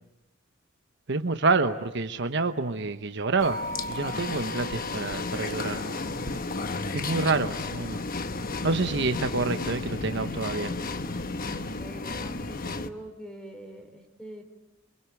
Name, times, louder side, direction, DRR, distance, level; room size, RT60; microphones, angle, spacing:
voice 1, 1.1-3.6 3.9-6.4 6.9-8.0 8.6-10.7, right 3 dB, 60° right, 8 dB, 1.1 m, -28 dB
sound 1, 3.4-12.9, left 3 dB, 45° left, 1.1 m, -33 dB
sound 2, 3.4-7.6, equal, 45° right, 4.8 m, -41 dB
voice 2, 11.6-14.4, right 1 dB, 5° left, 6 dB, 3.7 m, -44 dB
28.0 x 23.5 x 8.4 m, 0.93 s
head